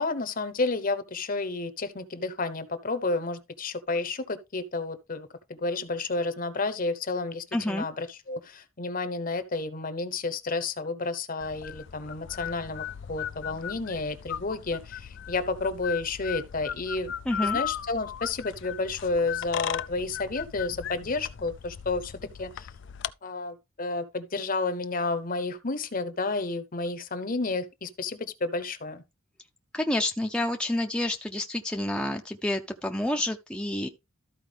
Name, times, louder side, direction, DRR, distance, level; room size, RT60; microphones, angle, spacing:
voice 1, 0.0-17.1 17.4-22.7 23.2-29.0, left 3 dB, 40° left, 0.9 m, -31 dB
voice 2, 7.5-7.9 17.3-17.6 29.7-33.9, left 1 dB, 5° left, 0.6 m, -29 dB
sound 1, 11.4-23.1, left 9 dB, 60° left, 0.4 m, -37 dB
13.5 x 4.6 x 3.4 m
head